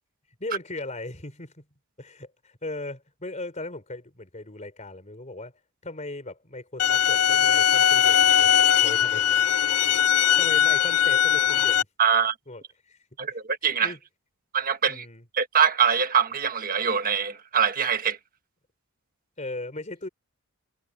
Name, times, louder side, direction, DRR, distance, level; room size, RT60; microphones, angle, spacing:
voice 1, 0.4-1.7 2.0-5.5 5.8-9.3 10.1-11.9 12.5-13.0 13.3-13.4 13.8-14.0 14.9-15.3 19.4-20.1, left 2 dB, 30° left, 4.1 m, -38 dB
sound 1, 6.8-11.8, left 10 dB, 80° left, 0.4 m, -20 dB
voice 2, 12.0-12.3 13.2-13.9 14.5-15.0 15.3-18.2, right 7 dB, 40° right, 1.4 m, -23 dB
head